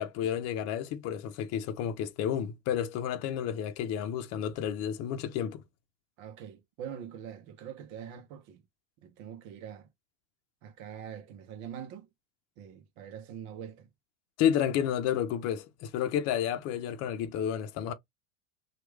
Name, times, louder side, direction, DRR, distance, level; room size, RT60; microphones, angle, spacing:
voice 1, 0.0-5.6 14.4-17.9, left 9 dB, 40° left, 0.7 m, -31 dB
voice 2, 6.2-8.6 9.0-9.9 10.6-12.1 12.6-13.9, right 8 dB, 50° right, 0.8 m, -44 dB
3.0 x 2.4 x 3.3 m
hypercardioid pair, 105°, 38 cm